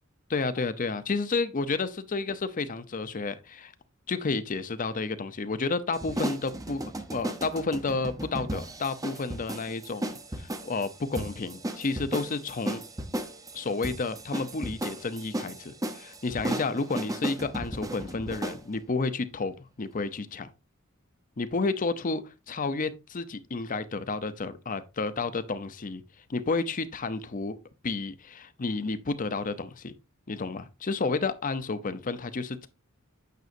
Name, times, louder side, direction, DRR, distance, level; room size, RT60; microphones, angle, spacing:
voice 1, 0.3-3.7 4.1-6.8 7.1-12.8 13.5-20.5 21.4-26.0 26.3-27.6 27.8-29.9 30.3-32.7, left 3 dB, 40° left, 0.6 m, -31 dB
sound 1, 5.9-18.6, right 1 dB, 15° right, 0.8 m, -35 dB
9.2 x 6.2 x 2.6 m
head